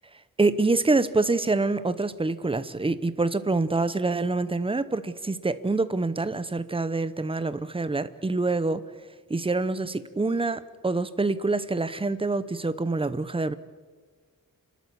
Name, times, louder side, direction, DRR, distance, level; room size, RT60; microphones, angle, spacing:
voice 1, 0.4-8.8 9.3-13.5, right 3 dB, 15° right, 14 dB, 0.8 m, -26 dB
29.0 x 12.5 x 8.5 m, 1.5 s
wide cardioid pair, 160°, 34 cm